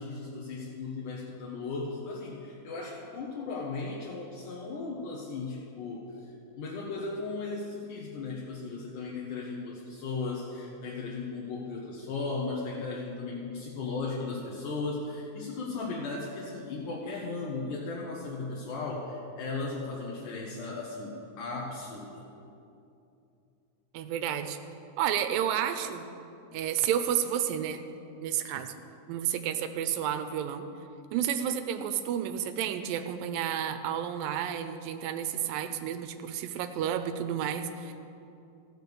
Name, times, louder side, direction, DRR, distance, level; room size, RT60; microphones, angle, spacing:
voice 1, 0.0-22.2, left 3 dB, 75° left, -4 dB, 2.6 m, -36 dB
voice 2, 23.9-24.6 25.0-26.1 26.5-27.8 28.2-28.7 29.1-30.7 31.1-37.9, right 9 dB, 90° right, 8 dB, 2.3 m, -31 dB
14.5 x 6.5 x 6.8 m, 2.7 s
omnidirectional pair, 3.9 m